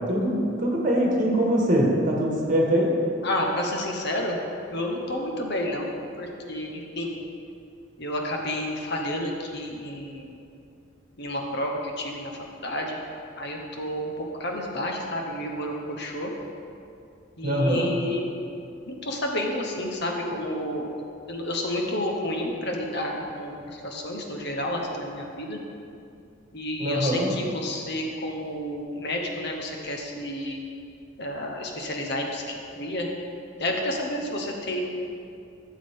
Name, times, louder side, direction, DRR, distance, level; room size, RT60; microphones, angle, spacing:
voice 1, 0.6-2.9 17.4-17.9 26.8-27.3, right 1 dB, 40° right, -2 dB, 1.6 m, -22 dB
voice 2, 3.2-4.4 4.7-7.2 8.0-10.4 11.2-13.0 13.3-16.3 17.4-18.3 18.8-20.9 21.3-25.6 26.5-30.6 31.2-33.1 33.6-34.8, left 1 dB, 55° left, 1 dB, 1.1 m, -30 dB
13.0 x 7.3 x 3.7 m, 2.6 s
head